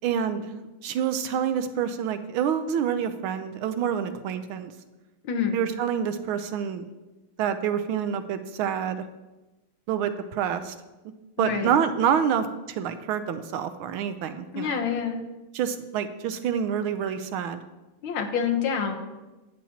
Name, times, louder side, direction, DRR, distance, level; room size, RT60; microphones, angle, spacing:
voice 1, 0.0-4.7 5.5-6.9 7.4-9.0 9.9-10.7 11.4-14.8 15.5-17.6, right 8 dB, 85° right, 10 dB, 1.4 m, -27 dB
voice 2, 5.2-5.6 11.4-11.7 14.5-15.2 18.0-19.0, left 7 dB, 75° left, 4 dB, 1.8 m, -27 dB
11.5 x 8.4 x 2.9 m, 1.1 s
omnidirectional pair, 2.2 m